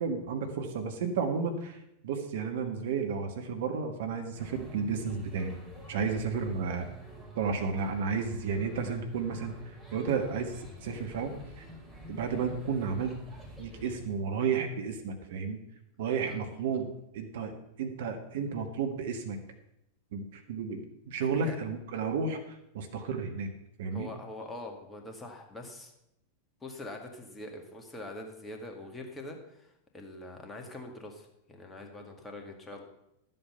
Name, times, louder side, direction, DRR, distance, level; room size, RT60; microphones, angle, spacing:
voice 1, 0.0-1.8 2.0-5.5 5.9-6.8 7.3-9.5 9.9-11.3 12.1-13.2 13.6-15.6 16.0-16.9 17.1-17.5 17.8-19.4 20.1-22.4 22.7-23.5 23.8-24.1, right 5 dB, 55° right, 5 dB, 1.5 m, -32 dB
sound 1, 4.4-14.1, right 1 dB, 5° right, 3.2 m, -47 dB
voice 2, 21.2-21.6 23.9-25.9 26.6-32.8, left 2 dB, 15° left, 3 dB, 2.1 m, -44 dB
12.5 x 7.8 x 5.7 m, 0.82 s
figure-of-eight pair, 90°, 0 cm